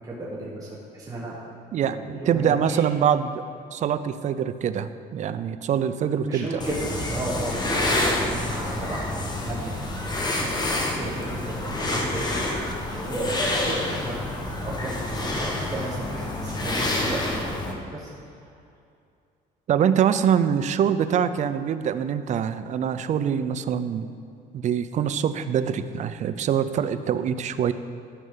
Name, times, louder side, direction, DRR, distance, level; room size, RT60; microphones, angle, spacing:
voice 1, 0.0-1.3 1.8-2.8 6.2-9.1 9.4-9.9 10.4-10.7 11.0-12.4 13.1-14.2 14.6-18.1, right 1 dB, 20° right, -5 dB, 1.3 m, -34 dB
voice 2, 1.7-3.5 3.7-6.6 19.7-24.1 24.5-27.7, right 8 dB, 45° right, 12 dB, 0.4 m, -24 dB
sound 1, 6.6-17.7, left 1 dB, 25° left, 1.1 m, -28 dB
12.5 x 5.4 x 3.8 m, 2.5 s
cardioid pair, 110°, 17 cm